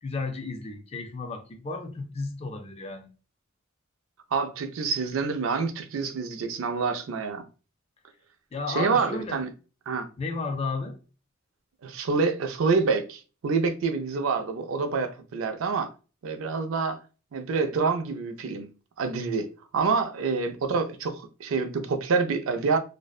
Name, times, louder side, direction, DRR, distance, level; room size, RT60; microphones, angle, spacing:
voice 1, 0.0-3.1 8.5-9.4 10.2-11.0, left 3 dB, 30° left, 0.4 m, -33 dB
voice 2, 4.3-7.4 8.7-9.5 9.9-10.1 11.8-15.9 16.2-17.0 17.3-18.7 19.0-19.5 19.7-22.8, right 4 dB, 80° right, 0.4 m, -27 dB
2.5 x 2.1 x 2.3 m
head